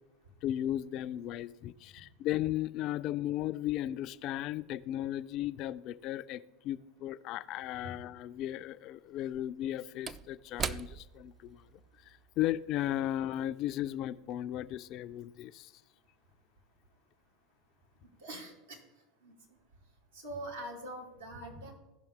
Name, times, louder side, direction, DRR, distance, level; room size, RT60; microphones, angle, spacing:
voice 1, 0.4-11.7 12.0-15.7, left 13 dB, 50° left, 13 dB, 0.4 m, -35 dB
Slam / Wood, 7.6-7.7 9.1-13.8 14.2-14.3, right 6 dB, 30° right, 0.4 m, -43 dB
voice 2, 18.0-18.8 19.2-19.3 20.2-21.8, right 1 dB, 85° right, -1 dB, 2.4 m, -43 dB
15.5 x 5.6 x 3.6 m, 1.1 s
hypercardioid pair, 90°, 0 cm